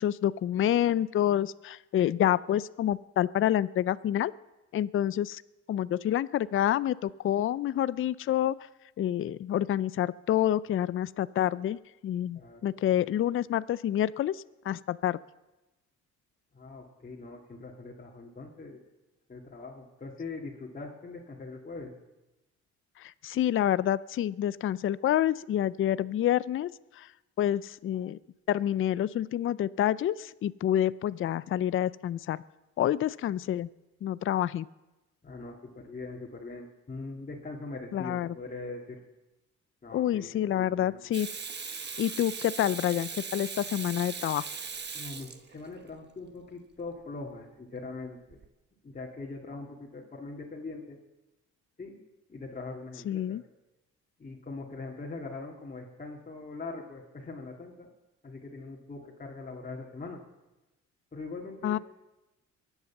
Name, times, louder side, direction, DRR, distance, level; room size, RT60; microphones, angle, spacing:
voice 1, 0.0-4.3 4.7-5.4 5.7-8.5 9.0-15.2 23.0-27.1 27.4-28.2 28.5-32.4 32.8-33.7 34.0-34.7 37.9-38.3 39.9-41.3 42.0-44.5 53.1-53.4 61.6-61.8, left 11 dB, 45° left, 18 dB, 0.4 m, -28 dB
voice 2, 12.3-13.0 16.5-18.8 19.3-21.9 35.2-39.0 39.8-41.0 44.9-48.4 48.8-51.0 51.8-52.0 52.3-53.4 54.2-57.9 58.2-60.2 61.1-61.8, left 3 dB, 25° left, -2 dB, 2.1 m, -42 dB
Water tap faucet / Sink (filling or washing), 41.1-45.9 48.3-48.5, right 5 dB, 35° right, 1.2 m, -39 dB
22.5 x 8.1 x 7.1 m, 1.1 s
cardioid pair, 90°, 30 cm